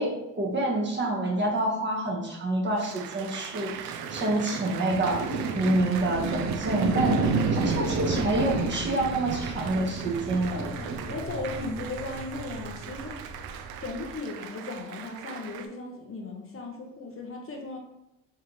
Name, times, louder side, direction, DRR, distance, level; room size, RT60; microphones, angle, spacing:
voice 1, 0.0-7.2 7.5-10.6, right 2 dB, 30° right, -1 dB, 1.3 m, -27 dB
Applause, 2.8-15.7, right 8 dB, 85° right, 0.6 m, -41 dB
sound 1, 3.8-14.2, right 3 dB, 50° right, 0.8 m, -31 dB
voice 2, 10.5-13.2 13.8-17.8, left 3 dB, 35° left, 1 dB, 0.9 m, -37 dB
4.7 x 3.5 x 3.1 m, 0.87 s
supercardioid pair, 85°, 37 cm